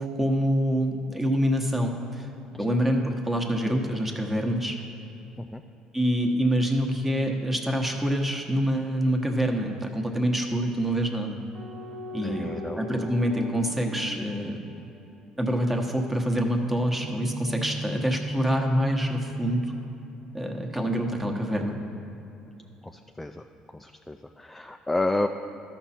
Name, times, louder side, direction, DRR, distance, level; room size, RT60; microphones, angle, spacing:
voice 1, 0.0-2.3 2.6-4.8 5.9-11.4 12.1-12.5 12.8-14.6 15.4-19.6 20.3-21.8, equal, 10° right, 2 dB, 1.1 m, -26 dB
sound 1, 11.5-15.2 16.7-20.4 21.2-22.4, equal, 35° right, 1.0 m, -38 dB
voice 2, 12.2-12.8 22.8-22.9 23.2-23.4 23.7-25.3, left 2 dB, 10° left, 5 dB, 0.3 m, -30 dB
12.5 x 5.9 x 4.3 m, 2.9 s
supercardioid pair, 85°, 2 cm